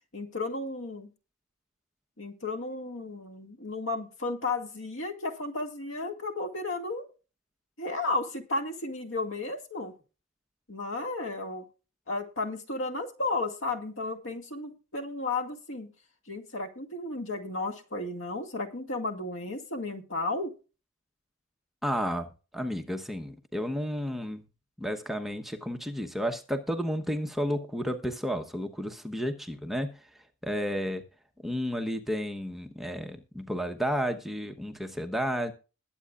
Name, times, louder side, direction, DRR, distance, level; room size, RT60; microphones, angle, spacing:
voice 1, 0.1-1.1 2.2-7.1 7.8-9.9 10.7-11.7 12.1-15.9 16.3-20.5, left 2 dB, 65° left, 2.2 m, -33 dB
voice 2, 21.8-24.4 24.8-29.9 30.4-31.0 31.4-35.5, equal, ahead, 1.0 m, -32 dB
21.0 x 8.5 x 2.5 m
head